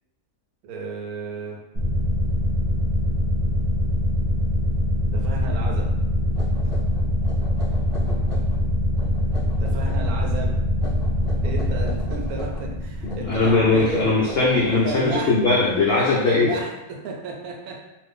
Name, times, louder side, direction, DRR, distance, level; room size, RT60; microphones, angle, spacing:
voice 1, 0.6-1.6 5.1-5.9 9.6-10.6 11.4-14.1 14.8-15.3 16.2-17.8, right 4 dB, 80° right, 0 dB, 1.1 m, -32 dB
sound 1, 1.7-15.0, left 1 dB, 40° right, 0.4 m, -24 dB
sound 2, 5.9-6.0 6.3-8.6 8.9-10.2 10.7-12.7 13.0-16.3, left 1 dB, 10° right, 0.9 m, -40 dB
voice 2, 13.0-16.6, left 3 dB, 75° left, -4 dB, 0.5 m, -20 dB
2.6 x 2.4 x 3.5 m, 1.0 s
omnidirectional pair, 1.6 m